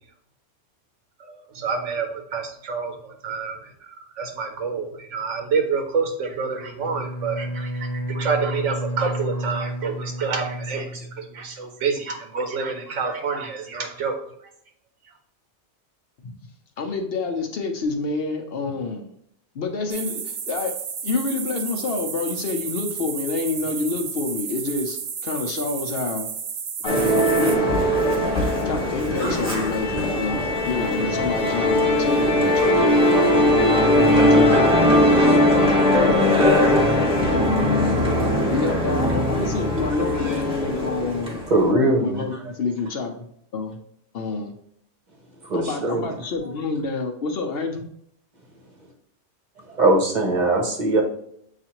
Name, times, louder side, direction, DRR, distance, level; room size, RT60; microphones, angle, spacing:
voice 1, 1.3-3.6 4.2-7.7 8.1-14.1, right 5 dB, 80° right, 3 dB, 0.9 m, -27 dB
Bowed string instrument, 6.8-11.5, right 1 dB, 85° left, 1.1 m, -31 dB
voice 2, 16.8-19.1 19.5-20.7 21.0-26.3 26.8-27.0 27.4-27.8 28.6-33.4 33.9-36.8 37.3-37.7 38.5-41.4 42.0-43.3 43.5-43.8 44.1-44.5 45.5-47.9, left 4 dB, 60° left, 4 dB, 0.8 m, -28 dB
sound 1, 19.9-27.6, right 7 dB, 60° right, 0.5 m, -32 dB
Musical instrument, 26.8-41.5, left 1 dB, 5° right, 1.0 m, -19 dB
voice 3, 41.5-42.2 45.4-46.0 49.8-51.0, right 2 dB, 45° right, 1 dB, 0.8 m, -20 dB
7.2 x 2.5 x 2.9 m, 0.71 s
omnidirectional pair, 1.2 m